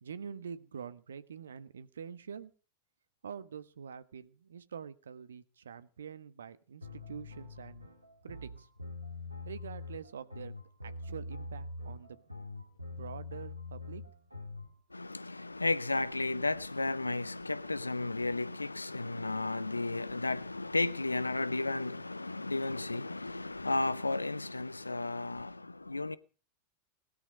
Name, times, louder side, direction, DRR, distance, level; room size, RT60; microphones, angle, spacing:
voice 1, 0.0-2.5 3.2-7.9 8.2-8.7 9.4-10.5 10.8-12.2 12.8-14.0, right 7 dB, 70° right, 1.4 m, -45 dB
sound 1, 6.8-14.7, left 2 dB, 85° right, 3.6 m, -44 dB
voice 2, 14.9-26.2, left 2 dB, 80° left, 0.8 m, -33 dB
20.0 x 12.5 x 5.3 m
figure-of-eight pair, 90°, 0 cm